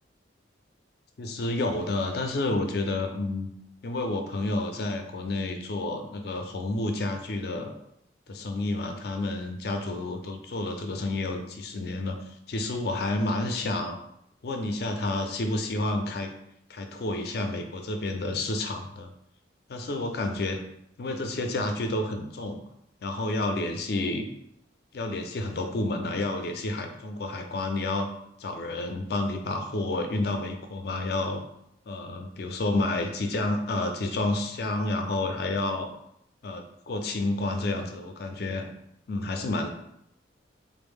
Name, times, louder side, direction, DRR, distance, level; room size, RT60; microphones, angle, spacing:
voice 1, 1.2-3.5 3.8-7.8 8.3-14.0 14.4-16.3 16.7-19.1 19.7-20.6 21.0-22.6 23.0-24.3 24.9-28.1 28.4-31.4 31.9-35.9 36.4-38.7 39.1-39.7, left 2 dB, 55° left, 5 dB, 0.4 m, -30 dB
3.4 x 2.0 x 3.5 m, 0.75 s
head